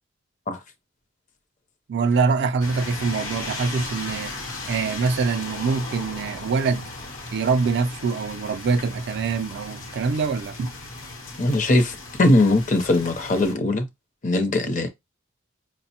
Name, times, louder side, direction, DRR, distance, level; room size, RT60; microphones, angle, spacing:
voice 1, 1.9-4.4 4.7-6.9 7.3-10.7, right 4 dB, 55° right, 0.3 m, -24 dB
sound 1, 2.6-13.5, left 2 dB, 75° left, 0.8 m, -36 dB
voice 2, 11.4-13.9 14.2-14.9, left 2 dB, 40° left, 0.6 m, -20 dB
4.9 x 2.0 x 2.8 m
head